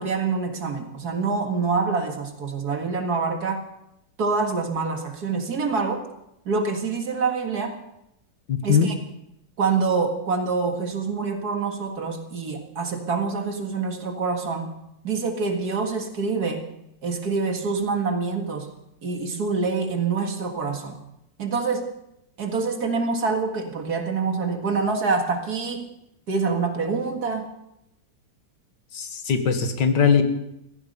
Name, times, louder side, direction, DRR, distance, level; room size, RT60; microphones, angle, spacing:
voice 1, 0.0-3.6 4.2-6.1 6.5-7.8 8.6-8.9 9.6-14.7 15.0-16.7 17.0-18.7 19.0-21.0 21.4-21.9 22.4-25.9 26.3-27.5, right 4 dB, 60° right, 4 dB, 2.4 m, -26 dB
voice 2, 8.5-8.9 28.9-30.2, left 6 dB, 85° left, 7 dB, 2.1 m, -20 dB
15.5 x 15.0 x 5.5 m, 0.83 s
omnidirectional pair, 1.9 m